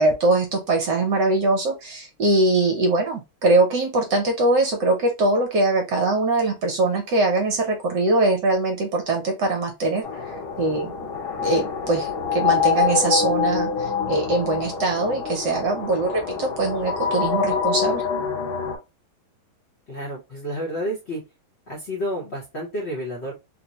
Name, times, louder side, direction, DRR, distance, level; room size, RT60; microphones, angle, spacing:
voice 1, 0.0-10.9 11.4-18.0, right 2 dB, 65° right, 2 dB, 1.4 m, -22 dB
sound 1, 10.0-18.8, left 6 dB, 80° left, 1.8 m, -25 dB
voice 2, 19.9-21.2 21.7-23.3, equal, 45° left, -3 dB, 1.0 m, -30 dB
3.9 x 2.1 x 2.8 m, 0.24 s
omnidirectional pair, 2.2 m